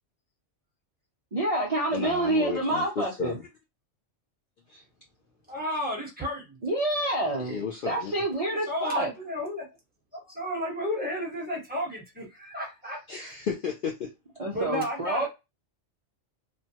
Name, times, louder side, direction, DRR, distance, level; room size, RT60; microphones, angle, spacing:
voice 1, 1.3-3.4 6.6-9.1 14.4-15.3, right 1 dB, 40° right, 0.6 m, -28 dB
voice 2, 1.9-3.5 4.7-4.8 7.4-8.1 13.1-14.1, left 6 dB, 60° left, 0.6 m, -33 dB
voice 3, 5.5-6.6 8.5-9.7 10.1-13.0 14.5-15.3, equal, 10° right, 1.1 m, -33 dB
3.0 x 2.2 x 2.8 m
omnidirectional pair, 1.2 m